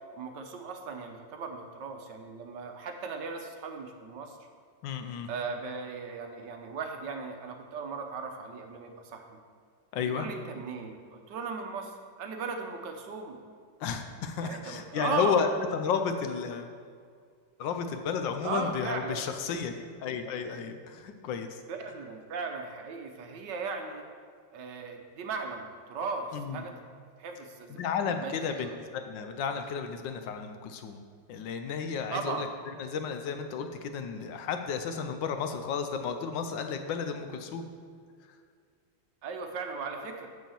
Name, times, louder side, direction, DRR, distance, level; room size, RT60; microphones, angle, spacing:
voice 1, 0.1-4.4 5.3-9.4 10.0-13.4 14.4-15.5 18.4-19.2 21.7-24.0 24.5-26.7 27.2-27.8 28.2-28.7 32.1-32.5 39.2-40.3, right 4 dB, 70° right, 4 dB, 1.4 m, -37 dB
voice 2, 4.8-5.3 9.9-10.3 13.8-16.7 17.6-19.7 20.0-21.6 26.3-26.6 27.7-31.0 31.3-32.5 32.8-37.7, left 6 dB, 75° left, 7 dB, 1.4 m, -32 dB
6.5 x 6.4 x 7.0 m, 2.1 s
omnidirectional pair, 2.1 m